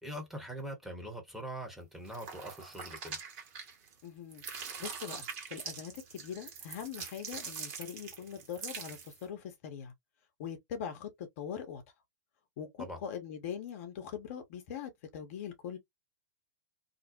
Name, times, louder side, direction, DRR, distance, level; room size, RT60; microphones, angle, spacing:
voice 1, 0.0-3.2 12.8-13.0, equal, 5° right, 0.9 m, -42 dB
sound 1, 2.1-4.0 4.3-9.2, right 6 dB, 45° right, 1.2 m, -43 dB
voice 2, 4.0-9.9 10.4-11.8 12.6-15.8, left 8 dB, 50° left, 0.8 m, -42 dB
2.5 x 2.0 x 2.6 m
figure-of-eight pair, 100°, 10 cm